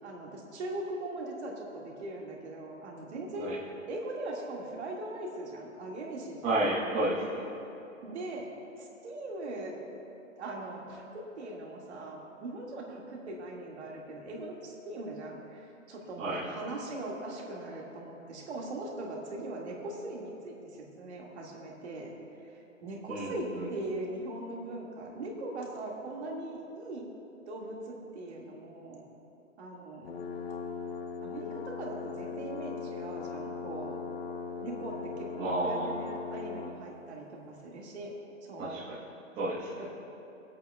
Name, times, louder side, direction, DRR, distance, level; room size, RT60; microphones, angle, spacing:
voice 1, 0.0-3.5 3.9-6.7 8.0-8.5 8.8-9.8 10.3-20.6 21.0-22.1 22.4-27.1 27.5-29.0 29.6-30.1 31.2-34.0 34.5-38.1 38.4-38.8 39.8-39.9, right 2 dB, 55° right, -2 dB, 1.9 m, -40 dB
voice 2, 6.4-7.4 16.2-16.4 23.1-23.3 23.6-23.7 35.4-35.9 38.6-38.8 39.4-39.7, right 1 dB, 15° right, -9 dB, 1.2 m, -30 dB
sound 1, 30.1-36.8, left 5 dB, 50° left, 0.8 m, -39 dB
25.0 x 8.4 x 2.3 m, 2.8 s
hypercardioid pair, 160°, 40 cm